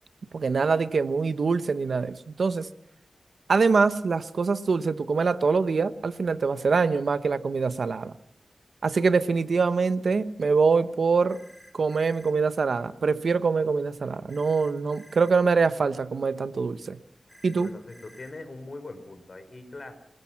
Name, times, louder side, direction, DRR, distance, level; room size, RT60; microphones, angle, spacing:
voice 1, 0.3-2.7 3.5-8.1 8.8-11.4 11.7-17.0 17.4-17.7, right 4 dB, 75° right, 12 dB, 1.1 m, -24 dB
sound 1, 11.3-12.3 14.3-15.3 17.3-18.3, equal, ahead, 5.0 m, -53 dB
voice 2, 17.5-19.9, left 2 dB, 45° left, 8 dB, 4.9 m, -41 dB
27.0 x 20.5 x 6.0 m, 0.67 s
wide cardioid pair, 95°, 0 cm